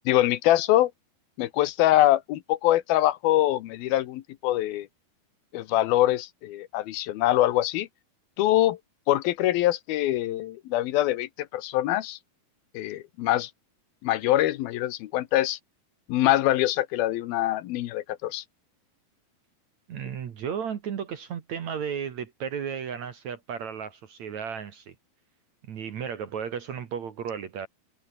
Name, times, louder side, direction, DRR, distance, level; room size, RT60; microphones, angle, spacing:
voice 1, 0.1-0.9 1.4-4.9 5.5-7.9 8.4-8.8 9.1-12.2 12.7-13.5 14.0-15.6 16.1-18.4, left 14 dB, 80° left, 2.8 m, -24 dB
voice 2, 19.9-25.0 25.7-27.7, right 7 dB, 55° right, 2.7 m, -34 dB
omnidirectional pair, 4.4 m